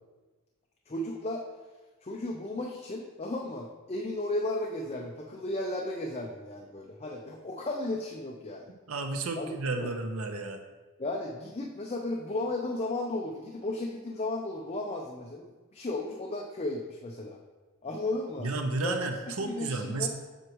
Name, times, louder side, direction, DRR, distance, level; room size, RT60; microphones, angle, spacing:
voice 1, 0.9-1.5 2.0-8.7 9.4-9.9 11.0-17.4 17.8-18.5 18.8-19.0 19.4-20.1, left 2 dB, 30° left, 0 dB, 0.5 m, -34 dB
voice 2, 8.9-10.6 18.4-20.1, right 3 dB, 70° right, 5 dB, 0.7 m, -32 dB
7.9 x 6.2 x 3.0 m, 1.3 s
head